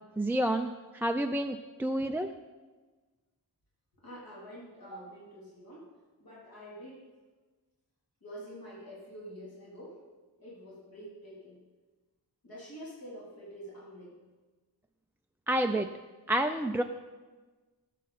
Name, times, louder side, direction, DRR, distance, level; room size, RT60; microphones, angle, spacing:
voice 1, 0.2-2.3 15.5-15.9 16.3-16.8, right 1 dB, 5° right, 4 dB, 0.3 m, -29 dB
voice 2, 4.0-5.9 6.2-7.1 8.2-10.0 10.4-11.6 12.4-14.2, equal, 65° left, -6 dB, 3.2 m, -47 dB
17.5 x 7.4 x 4.1 m, 1.3 s
wide cardioid pair, 140°, 39 cm